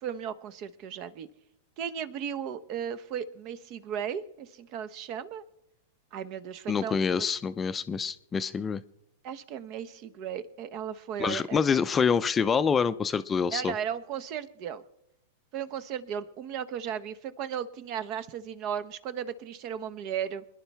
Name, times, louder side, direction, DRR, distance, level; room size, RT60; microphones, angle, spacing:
voice 1, 0.0-1.3 1.8-5.4 6.1-7.3 9.2-11.6 13.5-14.8 15.5-20.4, right 8 dB, 45° right, 14 dB, 1.0 m, -35 dB
voice 2, 6.7-8.8 11.2-13.7, left 6 dB, 20° left, 13 dB, 0.5 m, -26 dB
25.0 x 11.0 x 3.5 m, 0.82 s
figure-of-eight pair, 100°, 0 cm